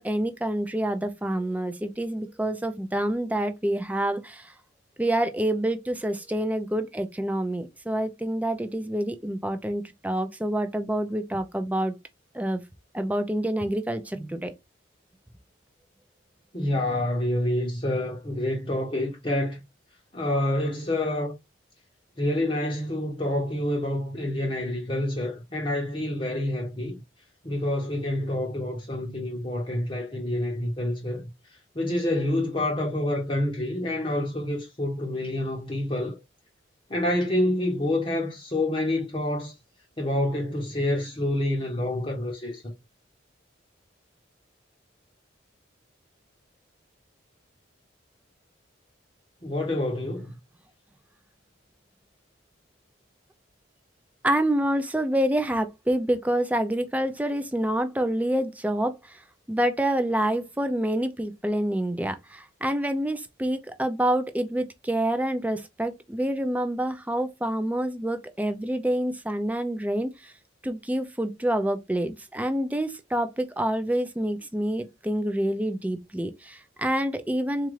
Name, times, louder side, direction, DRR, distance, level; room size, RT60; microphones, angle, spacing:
voice 1, 0.0-4.5 5.0-11.9 12.3-12.6 12.9-14.5 54.2-59.2 59.5-70.3 70.6-77.7, right 1 dB, 10° right, 0.4 m, -27 dB
voice 2, 16.5-19.6 20.1-21.3 22.2-27.0 27.4-31.2 31.7-36.2 36.9-39.5 40.0-42.7 49.4-50.3, left 1 dB, 25° left, 0.7 m, -27 dB
4.1 x 2.5 x 3.1 m
head